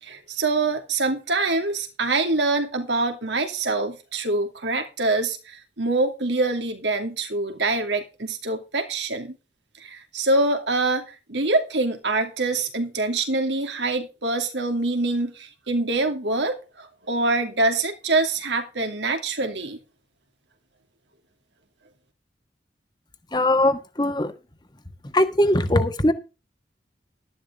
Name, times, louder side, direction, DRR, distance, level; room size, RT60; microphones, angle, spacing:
voice 1, 0.0-9.3 9.8-19.8, right 2 dB, 85° right, 2.6 m, -25 dB
voice 2, 23.3-24.3 25.1-26.1, left 1 dB, 25° left, 1.5 m, -20 dB
12.5 x 11.5 x 3.6 m
head